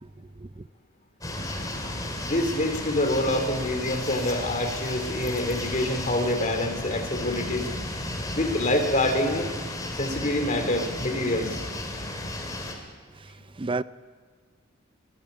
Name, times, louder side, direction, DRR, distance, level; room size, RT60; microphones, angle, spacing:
voice 1, 0.0-0.6 13.2-13.8, right 3 dB, 25° right, 0.5 m, -34 dB
sound 1, 1.2-12.7, left 1 dB, 20° left, 3.0 m, -34 dB
voice 2, 2.2-7.7 8.3-9.4 9.9-11.6, left 1 dB, 40° left, 3.1 m, -26 dB
22.5 x 12.0 x 9.8 m
head